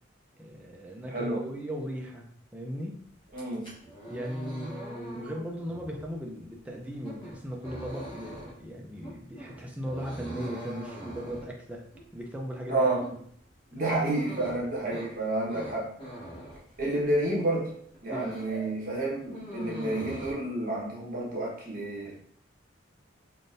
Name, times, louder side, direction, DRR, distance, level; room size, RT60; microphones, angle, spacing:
voice 1, 0.4-3.0 4.1-13.0 18.1-18.4, equal, 5° right, -1 dB, 0.4 m, -38 dB
voice 2, 1.1-1.4 3.3-3.7 12.7-13.0 13.7-15.9 16.8-17.7 18.0-22.2, right 2 dB, 45° right, -5 dB, 1.1 m, -29 dB
sound 1, 3.2-17.3 17.7-18.6 18.9-20.3, right 1 dB, 25° left, 1.0 m, -43 dB
3.7 x 2.5 x 2.5 m, 0.62 s
head